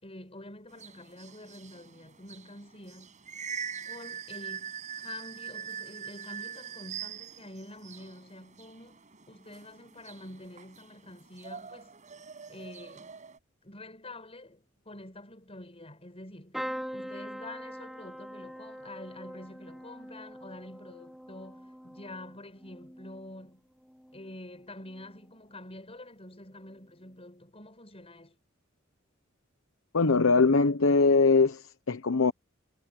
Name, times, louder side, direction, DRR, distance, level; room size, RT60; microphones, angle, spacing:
voice 1, 0.0-3.2 3.9-12.0 12.5-13.1 13.6-16.6 16.9-23.6 24.1-28.4, left 1 dB, 30° left, 6.8 m, -47 dB
sound 1, 0.7-13.4, right 7 dB, 35° right, 7.1 m, -43 dB
sound 2, 16.5-24.4 24.8-25.4 26.6-26.8 27.1-27.2, equal, ahead, 1.3 m, -43 dB
voice 2, 29.9-32.3, left 4 dB, 90° left, 0.9 m, -22 dB
head